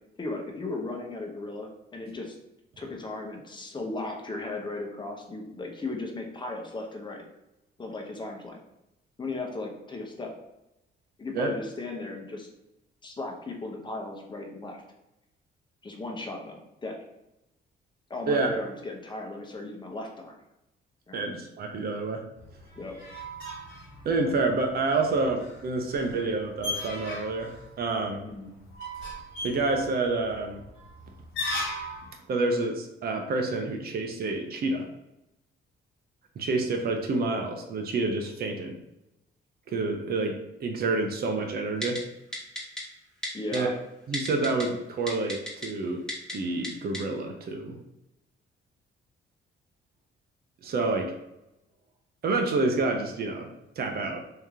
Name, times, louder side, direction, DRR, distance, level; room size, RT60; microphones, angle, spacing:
voice 1, 0.2-2.4 2.8-7.2 7.8-8.6 9.2-10.3 11.2-12.5 13.0-14.8 15.8-17.0 18.1-20.3 21.1-21.2 22.8-23.0 28.2-28.5 43.3-43.7, left 2 dB, 25° left, 1 dB, 0.8 m, -36 dB
voice 2, 21.1-22.2 24.0-27.5 27.8-28.2 29.4-30.6 32.3-34.9 36.4-38.8 39.7-42.0 43.5-43.7 44.1-46.0 46.3-47.8 50.6-51.1 52.2-53.5 53.8-54.2, right 3 dB, 50° right, 3 dB, 0.7 m, -28 dB
sound 1, 22.4-32.1, left 1 dB, 90° left, 1.3 m, -38 dB
Typing, 41.8-42.0 42.3-42.8 43.2-43.6 44.1-44.6 45.1-45.7 46.1-46.3 46.6-46.7 46.9-47.0, left 1 dB, 5° left, 1.1 m, -33 dB
3.2 x 2.8 x 3.6 m, 0.90 s
cardioid pair, 90°, 20 cm